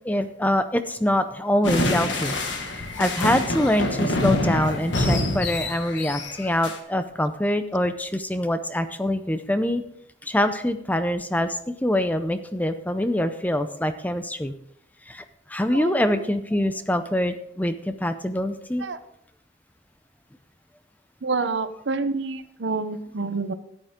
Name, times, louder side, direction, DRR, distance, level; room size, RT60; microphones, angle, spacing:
voice 1, 0.0-2.3 3.0-9.8 10.2-14.5 15.1-18.8, left 1 dB, 10° left, 10 dB, 0.5 m, -24 dB
sound 1, 1.6-6.8, left 1 dB, 70° left, 1.6 m, -26 dB
voice 2, 15.7-16.2 18.8-19.0 21.2-23.5, right 3 dB, 70° right, 11 dB, 0.8 m, -28 dB
13.5 x 9.1 x 3.6 m, 0.73 s
head